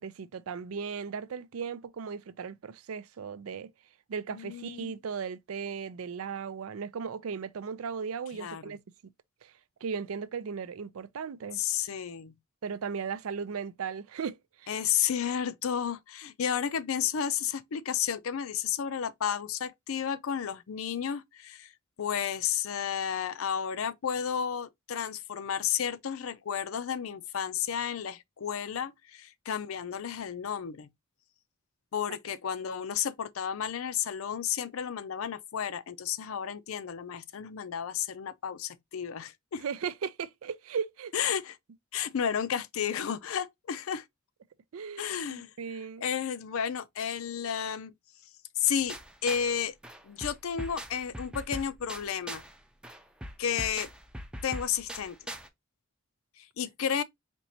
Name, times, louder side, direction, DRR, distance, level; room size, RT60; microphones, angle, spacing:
voice 1, 0.0-3.7 4.1-8.8 9.4-9.5 9.8-11.6 12.6-14.7 39.6-41.1 44.7-46.0, right 6 dB, 85° right, 0.4 m, -37 dB
voice 2, 4.3-5.0 8.3-8.8 11.5-12.4 14.7-21.7 22.0-30.9 31.9-39.6 41.1-41.6 41.9-44.1 45.0-45.5 46.0-47.9 48.6-49.8 50.0-52.4 53.4-53.9 54.4-55.2 56.4-57.0, left 8 dB, 80° left, 0.5 m, -32 dB
sound 1, 48.9-49.6 49.8-52.6 52.8-55.5, equal, 5° right, 0.4 m, -41 dB
4.4 x 2.9 x 2.7 m
head